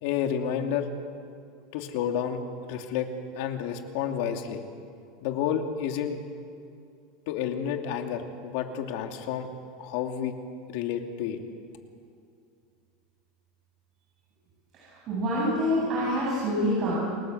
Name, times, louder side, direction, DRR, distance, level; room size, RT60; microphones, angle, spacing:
voice 1, 0.0-0.9 1.7-3.1 3.3-4.6 5.2-6.2 7.3-9.5 9.8-10.3 10.7-11.4, left 8 dB, 65° left, 4 dB, 2.7 m, -30 dB
voice 2, 14.7-16.9, equal, 35° right, -6 dB, 8.0 m, -26 dB
29.0 x 20.0 x 8.0 m, 2.4 s
supercardioid pair, 160°, 0 cm